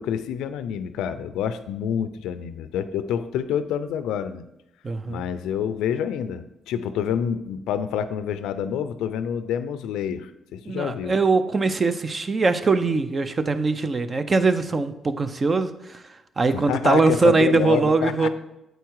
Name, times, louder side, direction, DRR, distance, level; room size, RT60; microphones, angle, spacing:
voice 1, 0.0-4.4 5.1-11.1 16.5-18.3, left 8 dB, 90° left, 12 dB, 0.4 m, -27 dB
voice 2, 4.8-5.2 10.7-16.0 16.4-18.3, right 3 dB, 35° right, 11 dB, 0.6 m, -21 dB
8.0 x 4.7 x 4.6 m, 0.86 s
cardioid pair, 90°, 0 cm